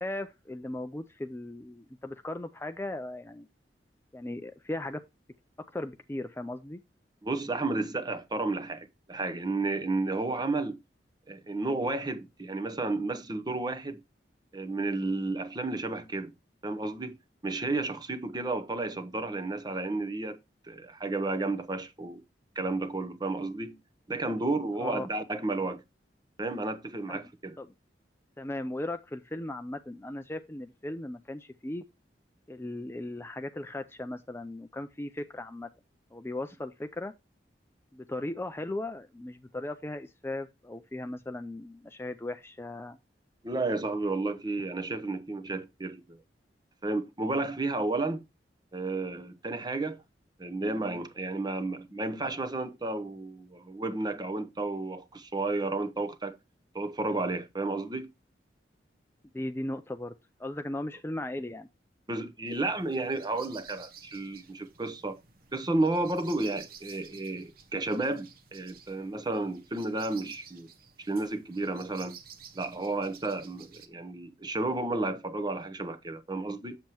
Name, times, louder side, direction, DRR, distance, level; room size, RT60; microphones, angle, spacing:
voice 1, 0.0-3.5 4.1-5.0 5.7-6.8 24.8-25.1 27.1-27.3 27.6-27.7 28.4-31.8 32.5-35.7 36.1-37.1 37.9-43.0 59.3-60.1 60.4-61.7, left 1 dB, 15° left, 0.4 m, -37 dB
voice 2, 7.2-10.8 11.3-14.0 14.5-16.3 16.6-17.2 17.4-20.4 20.6-22.2 22.6-23.8 24.1-25.8 26.4-27.5 43.4-46.2 46.8-48.2 48.7-50.0 50.4-56.4 56.7-58.1 62.1-65.2 65.5-70.7 71.0-72.2 72.5-76.8, right 2 dB, 25° right, 0.8 m, -32 dB
sound 1, 62.5-73.9, right 7 dB, 55° right, 1.0 m, -53 dB
7.5 x 7.3 x 2.9 m
head